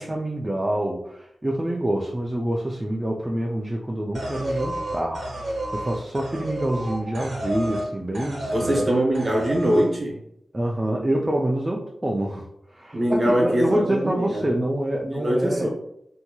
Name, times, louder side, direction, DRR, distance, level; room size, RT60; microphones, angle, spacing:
voice 1, 0.0-8.9 10.5-15.7, right 1 dB, 15° right, -2 dB, 0.3 m, -26 dB
sound 1, 4.1-7.9 8.1-8.9 9.1-9.9, right 1 dB, 70° right, 0.9 m, -31 dB
voice 2, 8.5-10.2 12.9-14.5 15.1-15.7, right 1 dB, 30° right, -1 dB, 0.8 m, -22 dB
2.9 x 2.7 x 2.2 m, 0.79 s
wide cardioid pair, 130°, 0 cm